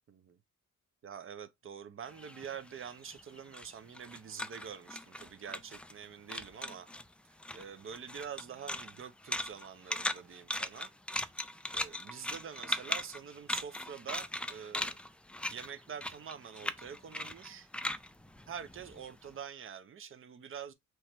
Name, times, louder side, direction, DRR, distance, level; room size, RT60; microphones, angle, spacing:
voice 1, 0.1-0.4 1.0-6.9 7.3-10.9 11.7-15.0 15.5-17.7 18.5-20.7, right 7 dB, 45° right, 0.7 m, -46 dB
sound 1, 2.1-6.0 6.3-7.1 7.4-19.2, left 1 dB, 5° left, 0.3 m, -39 dB
3.2 x 3.1 x 4.4 m
cardioid pair, 90°, 30 cm